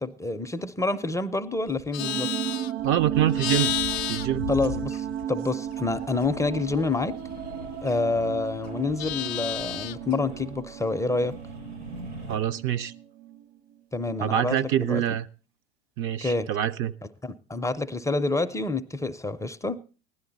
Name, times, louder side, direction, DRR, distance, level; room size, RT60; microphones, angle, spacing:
voice 1, 0.0-2.3 4.5-7.2 7.8-11.4 13.9-15.0 16.2-16.5 17.2-19.8, left 3 dB, 10° left, 0.5 m, -28 dB
Livestock farm animals working animals, 1.7-5.4 5.7-8.2 8.5-10.1, left 16 dB, 70° left, 0.5 m, -33 dB
sound 1, 2.0-13.4, right 11 dB, 65° right, 1.3 m, -34 dB
voice 2, 2.8-3.7 4.1-4.5 12.3-12.9 14.2-15.3 16.0-16.9, right 11 dB, 40° right, 0.5 m, -25 dB
sound 2, 6.1-12.4, right 1 dB, 80° right, 6.2 m, -44 dB
15.5 x 11.0 x 3.9 m
hypercardioid pair, 85°, 33 cm